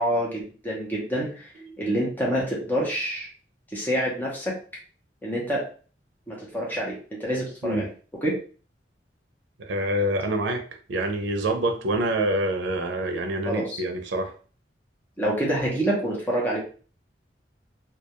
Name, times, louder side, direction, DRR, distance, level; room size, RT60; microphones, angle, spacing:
voice 1, 0.0-1.5 1.8-3.3 3.7-4.5 5.2-5.6 6.3-6.9 7.2-7.9 8.2-8.4 13.4-13.8 15.2-16.6, right 1 dB, 10° left, -4 dB, 0.7 m, -27 dB
voice 2, 9.6-10.6 10.9-14.3, right 1 dB, 85° right, 5 dB, 0.5 m, -26 dB
2.3 x 2.2 x 2.8 m, 0.39 s
head